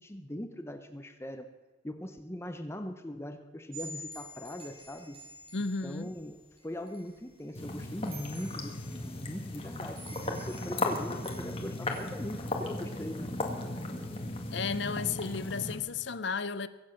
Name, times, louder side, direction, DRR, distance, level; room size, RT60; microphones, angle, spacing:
voice 1, 0.0-1.5 1.8-5.2 5.8-6.4 6.6-13.4, left 1 dB, 15° left, 0.7 m, -41 dB
sound 1, 3.7-13.3, equal, 30° right, 3.8 m, -50 dB
voice 2, 5.5-6.1 14.5-16.7, left 5 dB, 65° left, 0.7 m, -33 dB
sound 2, 7.5-15.8, left 2 dB, 30° left, 1.8 m, -36 dB
23.0 x 7.9 x 6.4 m
head